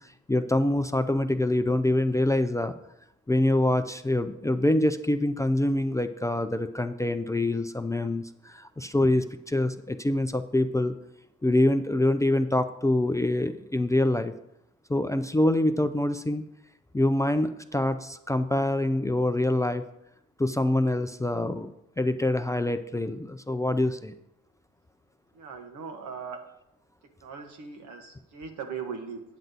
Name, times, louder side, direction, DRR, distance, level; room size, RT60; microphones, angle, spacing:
voice 1, 0.3-2.7 3.3-10.9 11.4-14.3 14.9-16.4 16.9-19.8 20.4-24.1, left 1 dB, 10° left, 8 dB, 0.4 m, -25 dB
voice 2, 25.3-26.4 27.2-29.2, right 6 dB, 75° right, 4 dB, 1.6 m, -39 dB
9.1 x 7.7 x 4.0 m, 0.81 s
cardioid pair, 90°, 30 cm